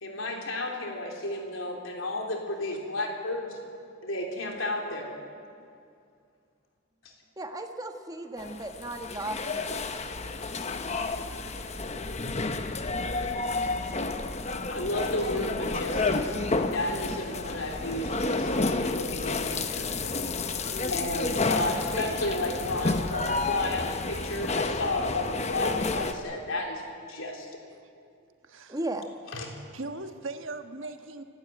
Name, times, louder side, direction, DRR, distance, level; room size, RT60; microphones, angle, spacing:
voice 1, 0.0-3.6 4.0-5.2 7.0-7.1 14.7-16.3 16.7-20.0 20.9-27.5 29.3-29.5, left 2 dB, 80° left, 1 dB, 3.5 m, -32 dB
voice 2, 7.4-9.8 28.7-29.1, right 1 dB, 20° right, 5 dB, 1.3 m, -35 dB
sound 1, 8.4-26.1, left 3 dB, 35° left, 1.0 m, -30 dB
voice 3, 27.6-28.1 28.4-28.8 29.7-31.2, right 3 dB, 75° right, 7 dB, 1.4 m, -39 dB
29.0 x 12.0 x 9.3 m, 2.4 s
head